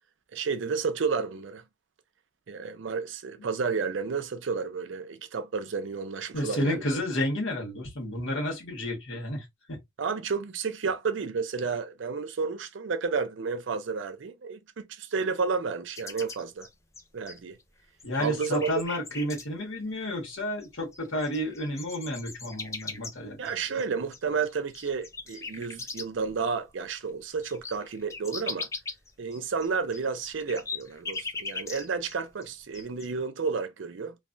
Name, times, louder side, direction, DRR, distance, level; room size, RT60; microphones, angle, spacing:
voice 1, 0.3-1.6 2.5-7.0 10.0-16.7 17.1-17.6 18.2-18.7 23.4-28.7 29.2-34.2, right 5 dB, 75° right, 0.5 m, -31 dB
voice 2, 6.3-9.8 18.0-23.4, left 1 dB, 80° left, 1.3 m, -31 dB
sound 1, 16.0-17.6 18.0-19.4 20.6-20.7 20.9-26.3 26.7-26.8 27.1-32.2 32.4-33.1, left 4 dB, 15° left, 0.4 m, -39 dB
3.2 x 2.2 x 2.5 m
head